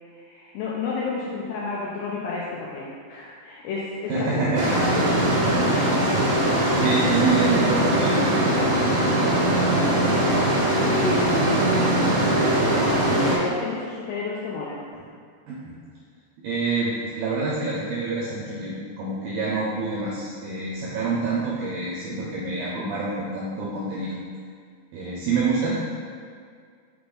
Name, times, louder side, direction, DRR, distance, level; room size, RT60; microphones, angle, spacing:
voice 1, 0.1-5.9 10.8-11.5 12.6-14.8, left 3 dB, 85° left, -5 dB, 2.4 m, -31 dB
voice 2, 4.1-4.7 5.9-6.0 6.5-8.6 14.9-15.0 15.5-15.7 16.4-24.2 24.9-25.8, right 3 dB, 85° right, -6 dB, 2.1 m, -27 dB
sound 1, 4.5-13.3, right 1 dB, 65° right, 1.5 m, -21 dB
6.6 x 4.3 x 3.9 m, 2.1 s
omnidirectional pair, 5.3 m